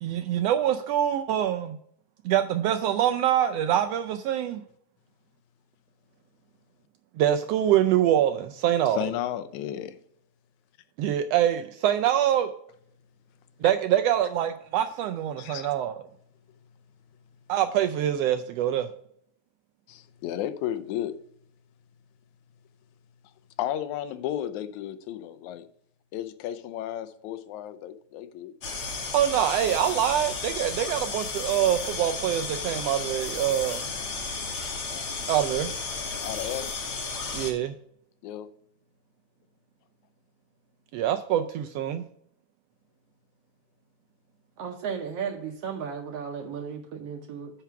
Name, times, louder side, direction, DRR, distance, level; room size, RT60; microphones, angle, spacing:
voice 1, 0.0-1.8 2.2-4.6 7.2-9.0 11.0-12.5 13.6-16.0 17.5-18.9 29.1-33.8 35.3-35.7 37.3-37.7 40.9-42.0, right 11 dB, 85° right, 1.4 m, -25 dB
voice 2, 8.9-10.0 13.6-13.7 15.4-15.7 19.9-21.2 23.6-25.7 26.1-28.5 36.2-36.7 38.2-38.5, left 11 dB, 85° left, 2.0 m, -33 dB
sound 1, 28.6-37.5, left 4 dB, 50° left, 1.3 m, -33 dB
voice 3, 44.6-47.5, right 7 dB, 70° right, 1.6 m, -34 dB
9.0 x 4.7 x 5.8 m
omnidirectional pair, 3.3 m